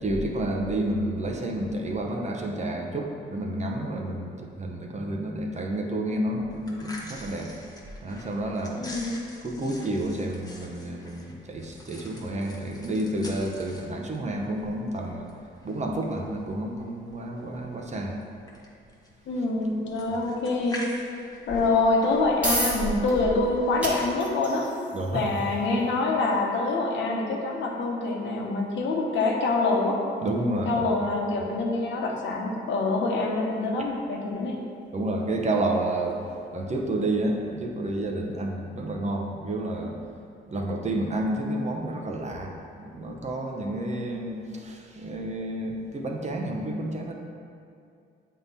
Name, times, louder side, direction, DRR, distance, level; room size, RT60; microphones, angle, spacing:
voice 1, 0.0-7.5 8.0-8.9 9.4-15.3 15.6-18.1 24.9-25.3 30.2-31.1 34.9-36.3 36.5-40.0 40.5-47.1, right 1 dB, 35° right, 1 dB, 0.9 m, -30 dB
sound 1, 6.5-24.3, equal, 20° left, 1.1 m, -43 dB
voice 2, 8.8-9.2 19.3-20.8 21.5-24.7 25.1-30.0 30.6-34.6, left 3 dB, 70° left, -1 dB, 1.1 m, -25 dB
sound 2, 21.9-36.8, right 1 dB, 5° right, 1.5 m, -39 dB
7.6 x 3.7 x 4.2 m, 2.4 s
cardioid pair, 90°, 20 cm